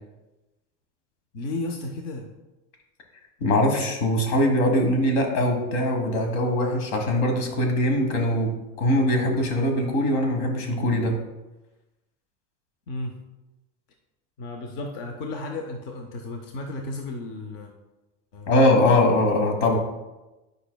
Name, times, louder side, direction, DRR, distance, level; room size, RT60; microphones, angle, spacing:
voice 1, 1.3-2.3 12.9-13.2 14.4-17.7 18.3-18.5, left 2 dB, 35° left, 3 dB, 0.4 m, -33 dB
voice 2, 3.4-11.2 18.5-19.8, left 1 dB, 60° left, 3 dB, 1.4 m, -22 dB
8.7 x 5.2 x 2.2 m, 1.1 s
supercardioid pair, 170°, 36 cm